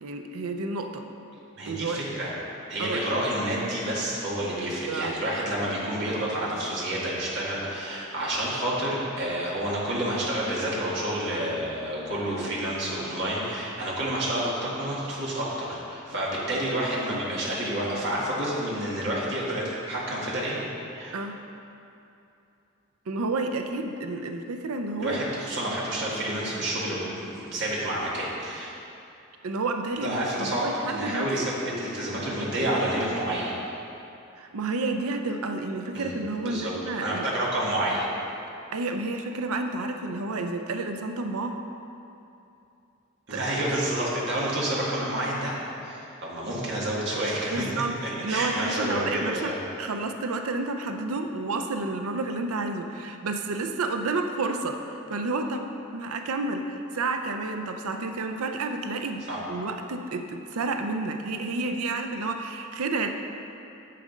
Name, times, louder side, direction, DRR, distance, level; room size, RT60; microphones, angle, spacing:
voice 1, 0.0-1.0 1.7-2.0 2.8-3.0 4.6-5.1 21.1-21.4 23.1-25.2 29.4-31.3 34.4-37.3 38.7-41.6 43.3-43.4 47.5-49.5 49.8-59.2 59.5-63.1, right 3 dB, 85° right, 6 dB, 0.5 m, -30 dB
voice 2, 1.6-2.3 2.7-20.6 20.9-21.2 25.0-28.7 30.0-33.5 35.9-36.1 36.4-36.7 37.0-38.1 43.3-45.6 45.8-47.7 48.0-49.6 59.3-59.4, right 1 dB, 50° right, -6 dB, 1.8 m, -29 dB
7.5 x 6.7 x 5.1 m, 2.7 s
head